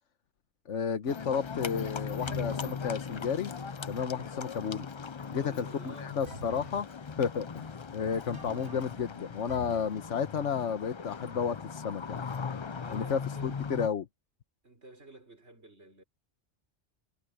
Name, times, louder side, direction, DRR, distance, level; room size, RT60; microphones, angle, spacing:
voice 1, 0.7-3.5 3.9-4.9 5.3-6.9 7.2-12.2 12.9-14.1, left 7 dB, 80° left, 1.4 m, -32 dB
Livestock farm animals working animals, 1.1-13.9, left 5 dB, 40° left, 0.4 m, -39 dB
sound 1, 2.2-2.7 6.3-6.8 8.3-9.0 9.5-10.0, right 1 dB, 85° right, 3.9 m, -45 dB
voice 2, 5.3-6.3 12.7-13.5 14.6-16.0, right 1 dB, 65° right, 6.2 m, -51 dB
omnidirectional pair, 1.2 m